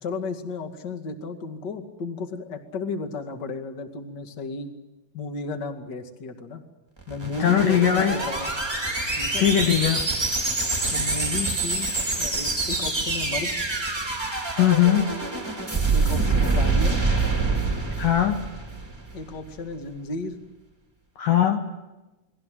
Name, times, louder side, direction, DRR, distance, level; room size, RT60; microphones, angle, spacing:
voice 1, 0.0-4.7 5.1-6.6 7.1-8.5 9.2-9.4 10.9-11.9 12.2-13.6 15.9-17.0 19.1-20.4, left 4 dB, 35° left, 2.1 m, -33 dB
sound 1, 7.0-19.3, right 3 dB, 5° right, 2.3 m, -26 dB
voice 2, 7.4-8.2 9.4-10.1 14.5-15.2 18.0-18.5 21.2-21.7, left 10 dB, 65° left, 2.4 m, -20 dB
29.0 x 21.5 x 7.8 m
omnidirectional pair, 4.7 m